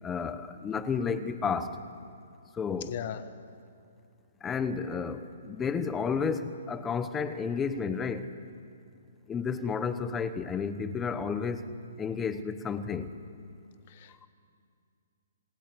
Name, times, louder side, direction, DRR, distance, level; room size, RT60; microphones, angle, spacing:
voice 1, 0.0-1.8 2.5-3.0 4.4-8.3 9.3-11.7 12.0-13.1, left 5 dB, 10° left, 11 dB, 1.1 m, -31 dB
voice 2, 2.9-3.3 13.9-14.3, left 10 dB, 40° left, 11 dB, 1.2 m, -38 dB
27.0 x 19.0 x 9.9 m, 2.4 s
hypercardioid pair, 165°, 0 cm